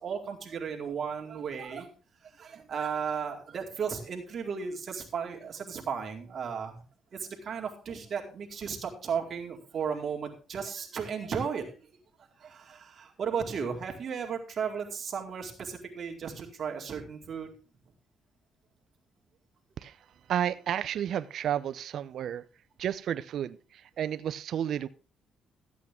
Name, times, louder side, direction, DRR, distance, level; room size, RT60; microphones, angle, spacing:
voice 1, 0.0-1.9 2.3-6.8 7.1-11.7 12.4-17.5, right 6 dB, 55° right, 2 dB, 2.1 m, -35 dB
voice 2, 20.3-22.4 22.8-24.9, right 10 dB, 70° right, 14 dB, 0.5 m, -32 dB
13.5 x 8.4 x 3.6 m, 0.36 s
cardioid pair, 90°, 0 cm